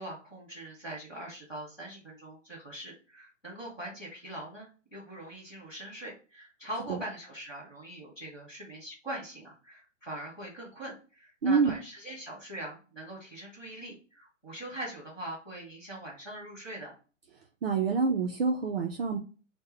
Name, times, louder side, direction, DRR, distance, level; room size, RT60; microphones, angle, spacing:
voice 1, 0.0-16.9, right 1 dB, 5° left, -12 dB, 0.5 m, -42 dB
voice 2, 11.4-11.7 17.6-19.2, right 5 dB, 50° right, 2 dB, 0.5 m, -26 dB
3.7 x 2.1 x 3.1 m, 0.35 s
hypercardioid pair, 170°, 38 cm